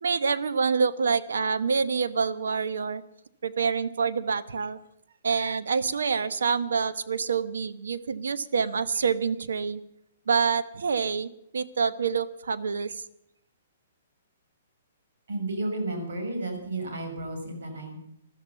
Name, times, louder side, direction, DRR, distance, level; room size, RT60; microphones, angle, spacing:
voice 1, 0.0-3.0 3.4-4.8 5.2-9.8 10.3-13.0, right 5 dB, 90° right, 13 dB, 1.1 m, -27 dB
voice 2, 15.3-18.0, right 2 dB, 70° right, 3 dB, 6.0 m, -32 dB
14.0 x 13.0 x 6.9 m, 0.77 s
hypercardioid pair, 155°, 0 cm